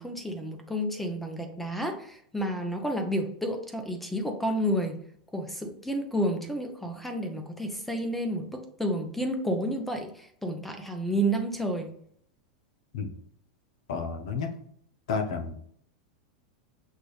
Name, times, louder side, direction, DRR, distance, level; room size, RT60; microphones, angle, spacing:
voice 1, 0.0-5.0 5.3-11.9, equal, 5° left, 5 dB, 0.7 m, -30 dB
voice 2, 13.9-14.5 15.1-15.5, left 5 dB, 70° left, 5 dB, 0.8 m, -30 dB
6.3 x 2.5 x 3.3 m, 0.65 s
hypercardioid pair, 115°, 4 cm